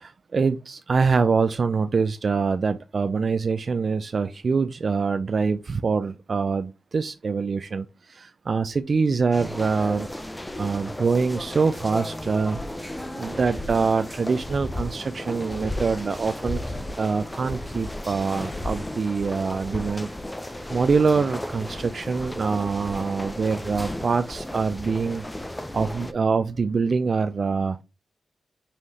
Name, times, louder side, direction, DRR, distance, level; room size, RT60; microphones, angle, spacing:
voice 1, 0.0-10.1 10.6-12.6 13.1-20.1 20.7-25.2 25.7-27.8, right 4 dB, 55° right, 0.3 m, -24 dB
sound 1, 9.3-26.1, left 1 dB, 15° left, 0.5 m, -34 dB
5.4 x 3.1 x 2.8 m
cardioid pair, 55°, 0 cm